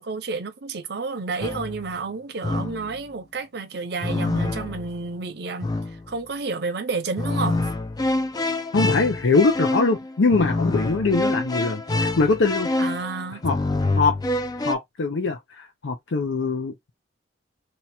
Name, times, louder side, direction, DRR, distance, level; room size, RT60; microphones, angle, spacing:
voice 1, 0.0-5.7 6.1-7.6 12.8-13.4, right 4 dB, 60° right, 0.7 m, -30 dB
sound 1, 1.4-1.9 2.4-3.0 4.0-5.0 5.6-6.2 7.2-14.7, left 2 dB, 20° left, 0.4 m, -26 dB
voice 2, 8.7-12.7 13.4-13.6 14.0-14.2 14.6-16.7, left 3 dB, 80° left, 0.6 m, -22 dB
2.8 x 2.3 x 4.1 m
head